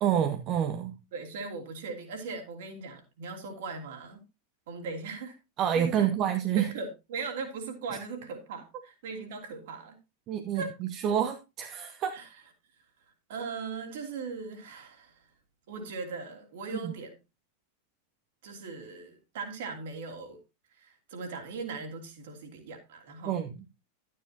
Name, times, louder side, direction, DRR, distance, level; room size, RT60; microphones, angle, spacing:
voice 1, 0.0-0.9 5.6-6.7 10.3-12.2 16.7-16.9 23.3-23.5, right 9 dB, 35° right, 7 dB, 0.9 m, -28 dB
voice 2, 1.1-4.2 4.7-5.4 5.7-6.1 6.6-10.0 10.5-10.7 12.1-12.3 13.3-15.3 15.7-17.2 18.4-20.4 20.7-23.5, right 4 dB, 55° right, 4 dB, 2.8 m, -39 dB
12.0 x 9.4 x 2.9 m, 0.26 s
figure-of-eight pair, 90°, 0 cm